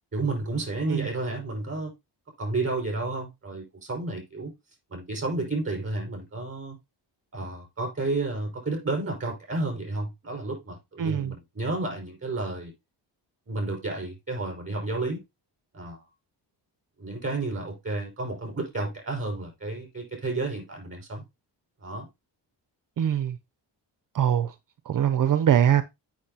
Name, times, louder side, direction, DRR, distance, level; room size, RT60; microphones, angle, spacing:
voice 1, 0.1-1.9 2.4-4.5 4.9-6.8 7.3-12.7 13.5-15.2 15.7-16.0 17.0-21.2 21.8-22.1, right 2 dB, 30° right, 5.5 m, -31 dB
voice 2, 11.0-11.3 23.0-23.4 24.1-24.5 24.9-25.8, right 9 dB, 50° right, 0.6 m, -22 dB
8.7 x 6.1 x 2.8 m
cardioid pair, 110°, 43 cm